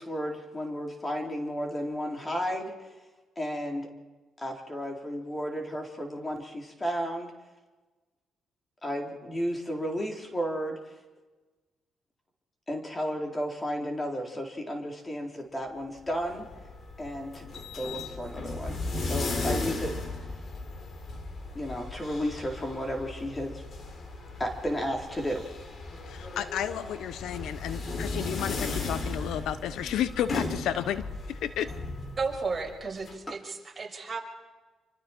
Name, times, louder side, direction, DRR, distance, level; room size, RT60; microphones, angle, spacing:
voice 1, 0.0-2.7 3.4-3.9 4.4-7.3 8.8-10.8 12.7-16.5 17.0-20.0 21.5-23.6 24.4-25.5, equal, 20° left, 2 dB, 3.7 m, -33 dB
sound 1, 16.1-33.1, left 3 dB, 50° left, 3.3 m, -36 dB
voice 2, 26.1-31.7, left 10 dB, 80° left, 14 dB, 0.9 m, -32 dB
voice 3, 32.2-34.2, right 4 dB, 30° right, -1 dB, 5.9 m, -33 dB
27.0 x 25.0 x 4.5 m, 1.2 s
cardioid pair, 90°, 0 cm